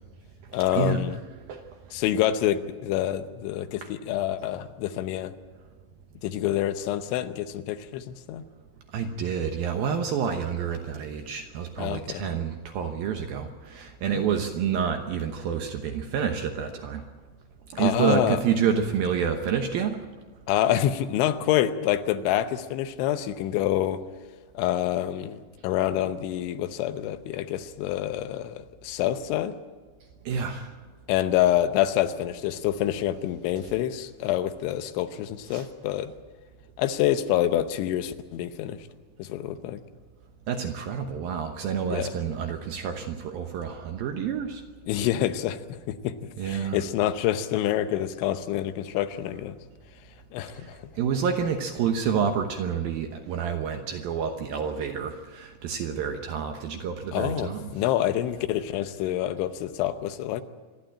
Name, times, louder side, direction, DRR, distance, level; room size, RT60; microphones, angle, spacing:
voice 1, 0.5-1.2 1.9-5.4 6.2-8.4 11.8-12.2 14.1-14.2 17.8-18.4 20.5-24.0 24.5-29.6 31.1-36.1 36.8-38.9 39.2-39.8 41.9-42.1 44.9-49.6 50.3-50.9 57.1-60.4, left 12 dB, 85° left, 10 dB, 3.3 m, -27 dB
voice 2, 8.9-17.0 17.7-20.0 30.3-30.7 35.5-35.7 40.5-44.6 46.4-46.8 50.5-50.7 51.0-57.7, right 7 dB, 70° right, 5 dB, 2.4 m, -28 dB
27.0 x 11.5 x 8.7 m, 1.4 s
omnidirectional pair, 5.3 m